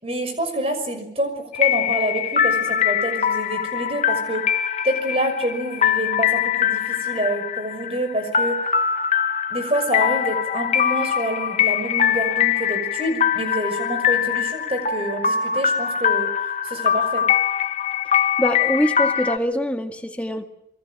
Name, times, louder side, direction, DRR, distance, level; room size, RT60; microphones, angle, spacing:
voice 1, 0.0-4.4 4.8-8.6 9.5-16.3 16.6-17.3, right 1 dB, 35° right, 7 dB, 6.1 m, -27 dB
sound 1, 1.5-19.4, left 8 dB, 40° left, 1.1 m, -22 dB
voice 2, 18.4-20.5, equal, 10° left, 4 dB, 2.0 m, -23 dB
28.5 x 23.5 x 7.7 m, 0.76 s
head